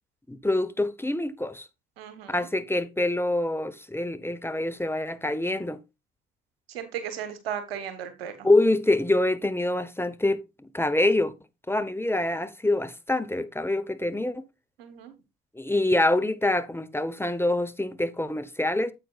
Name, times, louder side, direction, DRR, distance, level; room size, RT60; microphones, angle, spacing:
voice 1, 0.3-1.7 2.3-5.8 8.4-11.3 11.7-14.4 15.5-18.9, left 2 dB, 10° left, 1.0 m, -25 dB
voice 2, 2.0-2.5 6.7-8.5 14.8-15.1, right 8 dB, 85° right, 1.3 m, -36 dB
9.1 x 7.9 x 2.4 m
hypercardioid pair, 50°, 30 cm